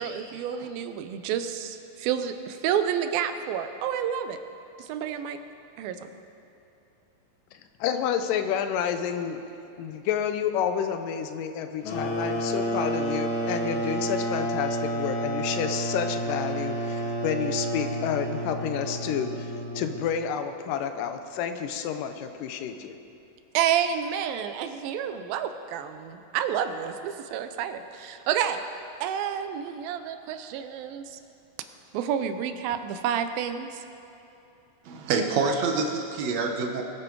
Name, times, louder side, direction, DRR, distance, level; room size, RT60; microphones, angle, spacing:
voice 1, 0.0-4.4 4.8-5.4 5.8-6.1 23.5-28.6 29.0-31.2 31.9-33.8, right 9 dB, 90° right, 9 dB, 2.5 m, -29 dB
voice 2, 7.8-9.4 9.8-23.0, left 8 dB, 75° left, 8 dB, 2.2 m, -30 dB
sound 1, 11.8-20.3, right 1 dB, 60° left, 2.5 m, -30 dB
voice 3, 34.8-36.8, right 4 dB, 65° right, 3 dB, 2.0 m, -26 dB
21.5 x 8.7 x 4.7 m, 2.9 s
omnidirectional pair, 4.1 m